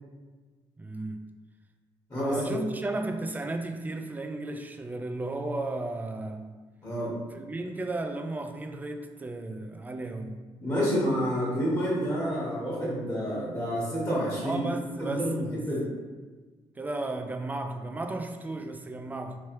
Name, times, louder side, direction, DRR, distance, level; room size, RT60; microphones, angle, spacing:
voice 1, 0.8-1.3 2.1-6.5 7.3-10.4 14.4-15.7 16.8-19.4, right 2 dB, 15° right, 6 dB, 0.4 m, -34 dB
voice 2, 2.1-2.6 6.8-7.1 10.6-14.6 15.0-15.8, equal, 30° left, -7 dB, 1.4 m, -29 dB
3.1 x 3.1 x 3.0 m, 1.3 s
cardioid pair, 85°, 10 cm